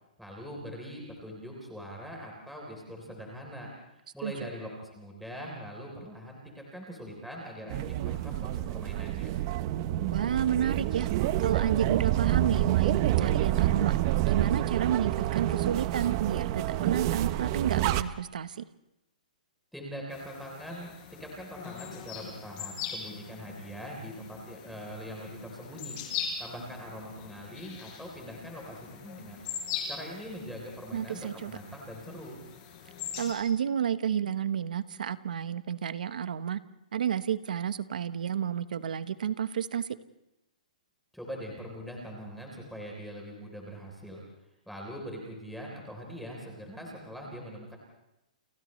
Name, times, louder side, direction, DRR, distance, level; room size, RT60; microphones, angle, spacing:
voice 1, 0.2-3.7 4.1-9.3 19.7-26.0 26.4-29.5 29.9-31.2 31.5-32.4 41.1-44.2 44.7-47.8, equal, ahead, -1 dB, 3.7 m, -42 dB
sound 1, 7.7-18.0, right 13 dB, 30° right, 0.8 m, -28 dB
voice 2, 10.1-11.1 11.4-14.0 14.3-18.7 30.9-31.6 33.2-36.6 36.9-40.0, right 9 dB, 75° right, 13 dB, 1.1 m, -31 dB
sound 2, 20.1-33.3, left 7 dB, 30° left, 4.9 m, -41 dB
29.5 x 29.5 x 3.2 m, 0.92 s
hypercardioid pair, 165°, 4 cm